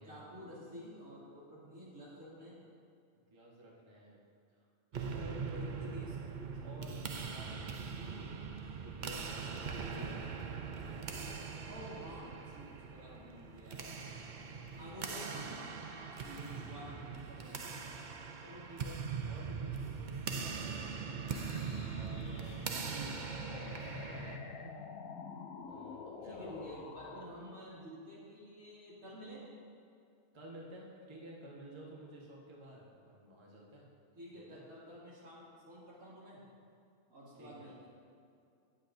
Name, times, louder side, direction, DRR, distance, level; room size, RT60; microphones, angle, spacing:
voice 1, 0.1-2.6 5.5-6.7 11.7-14.2 14.8-15.9 16.2-17.7 22.9-23.1 26.2-29.5 34.1-36.4 37.1-37.9, equal, 80° right, -8 dB, 3.0 m, -50 dB
voice 2, 3.1-4.2 4.6-4.7 5.1-6.1 6.6-8.4 8.7-11.7 14.5-15.1 16.5-16.7 18.4-21.4 21.9-24.8 25.7-26.6 30.3-33.9 34.3-34.6 37.4-37.7, right 1 dB, 20° right, -3 dB, 1.3 m, -53 dB
sound 1, 4.9-24.4, right 5 dB, 50° right, 0.5 m, -41 dB
sound 2, 21.3-27.3, left 5 dB, 80° left, 1.1 m, -48 dB
18.0 x 7.7 x 2.6 m, 2.5 s
omnidirectional pair, 1.4 m